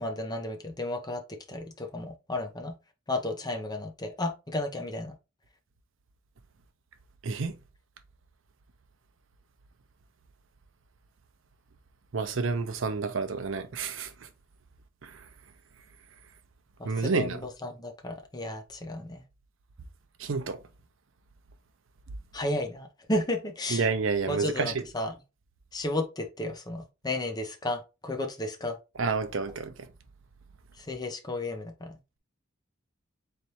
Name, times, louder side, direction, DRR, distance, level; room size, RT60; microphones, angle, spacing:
voice 1, 0.0-2.7 3.1-5.1 16.8-19.2 22.3-23.8 24.3-25.1 25.7-28.8 30.9-32.0, left 1 dB, 20° left, 0.7 m, -33 dB
voice 2, 7.2-7.6 12.1-14.3 15.0-15.2 16.8-17.4 20.2-20.6 23.7-24.8 29.0-29.9, right 4 dB, 65° right, 0.6 m, -29 dB
4.1 x 3.3 x 2.9 m
head